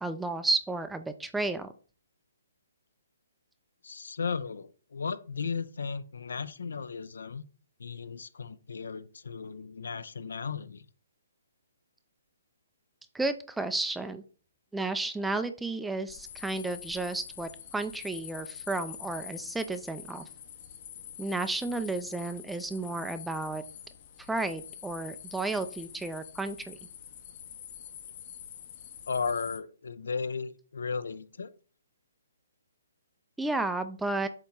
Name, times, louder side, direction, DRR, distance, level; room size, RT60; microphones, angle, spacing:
voice 1, 0.0-1.7 13.1-14.2 14.7-20.2 21.2-23.6 24.3-26.8 33.4-34.3, right 2 dB, 5° right, 10 dB, 0.3 m, -32 dB
voice 2, 3.8-7.4 7.8-10.9 29.1-31.5, left 5 dB, 80° left, 15 dB, 0.6 m, -35 dB
sound 1, 16.1-29.6, left 9 dB, 35° left, 0.7 m, -46 dB
7.7 x 2.9 x 4.5 m, 0.39 s
hypercardioid pair, 165°, 0 cm